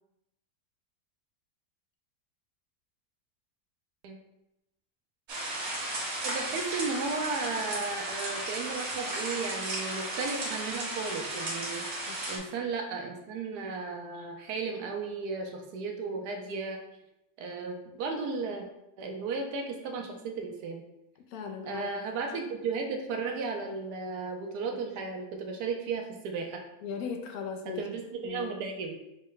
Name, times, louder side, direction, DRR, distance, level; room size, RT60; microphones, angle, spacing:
sound 1, 5.3-12.4, right 1 dB, 70° right, 1.5 m, -34 dB
voice 1, 6.2-16.8 17.4-18.7 19.0-20.8 21.7-26.6 27.7-29.0, right 4 dB, 85° right, 3 dB, 1.3 m, -35 dB
voice 2, 21.3-21.9 22.3-22.4 26.8-27.9 28.2-28.5, left 6 dB, 75° left, 4 dB, 1.0 m, -38 dB
5.1 x 2.1 x 3.8 m, 0.87 s
omnidirectional pair, 1.7 m